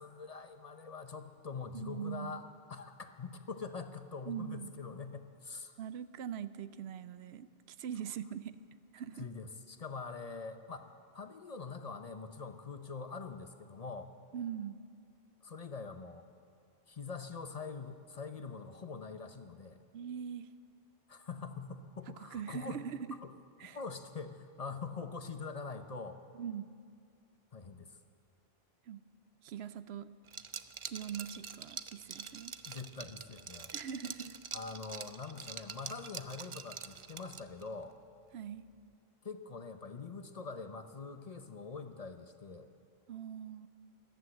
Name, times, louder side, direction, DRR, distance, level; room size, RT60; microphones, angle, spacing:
voice 1, 0.0-5.8 9.2-10.9 11.1-14.1 15.4-16.3 16.9-19.8 21.1-22.8 23.2-23.3 23.6-26.2 27.5-28.0 32.6-33.7 34.5-38.0 39.2-42.7, left 4 dB, 40° left, 8 dB, 0.8 m, -44 dB
voice 2, 1.7-2.4 4.3-4.7 5.8-8.6 8.9-9.3 14.3-14.8 19.9-20.5 22.2-23.2 23.6-23.8 26.3-26.7 28.9-29.0 29.4-30.1 30.8-32.5 33.7-34.4 38.3-38.7 43.1-43.7, right 8 dB, 85° right, 14 dB, 0.8 m, -42 dB
Liquid, 30.3-37.7, right 6 dB, 45° right, 0.4 m, -45 dB
14.0 x 13.0 x 7.8 m, 2.3 s
omnidirectional pair, 1.1 m